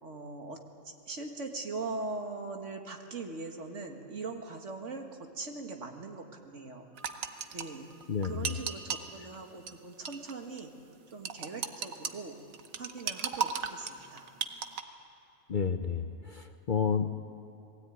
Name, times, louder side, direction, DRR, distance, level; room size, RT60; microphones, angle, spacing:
voice 1, 0.0-6.9 7.5-7.9 8.2-10.7 11.1-12.4 12.8-14.2, right 3 dB, 65° right, 3 dB, 2.1 m, -41 dB
sound 1, 7.0-9.1 9.7-9.8 10.1-10.3 10.6-10.7 11.3-12.1 12.5-14.8, right 7 dB, 85° right, 1.4 m, -35 dB
voice 2, 8.1-8.5 15.5-17.1, left 6 dB, 45° left, 7 dB, 0.7 m, -31 dB
20.5 x 16.5 x 9.3 m, 2.9 s
omnidirectional pair, 1.4 m